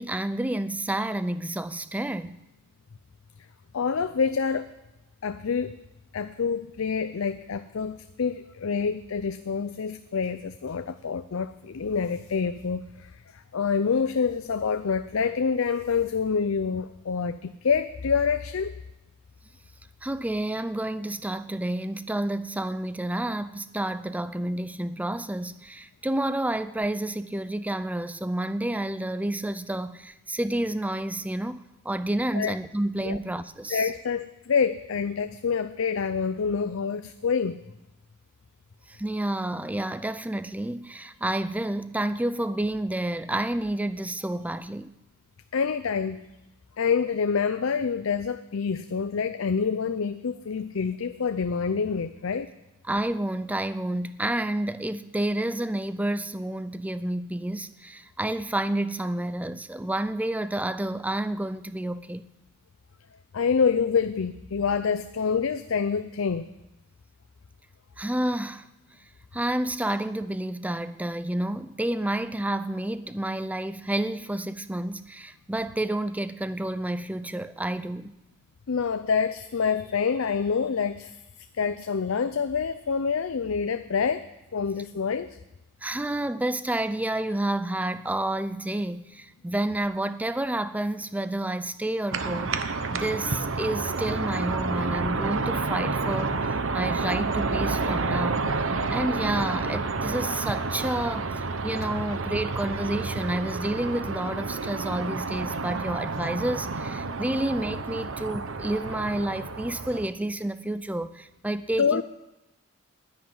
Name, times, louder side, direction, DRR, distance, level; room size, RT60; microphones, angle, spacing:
voice 1, 0.0-2.4 20.0-33.9 38.9-44.9 52.8-62.2 68.0-68.7 69.3-78.1 85.8-92.6 92.9-112.0, right 1 dB, 5° right, 0.5 m, -30 dB
voice 2, 3.7-4.7 5.2-5.7 6.1-18.7 32.3-32.5 33.0-33.2 33.7-37.6 45.5-46.2 46.8-52.5 63.3-66.5 78.7-81.2 81.6-85.4 111.8-112.0, left 6 dB, 75° left, 0.5 m, -27 dB
sound 1, 92.1-110.1, right 3 dB, 65° right, 0.9 m, -29 dB
10.5 x 10.5 x 9.5 m
head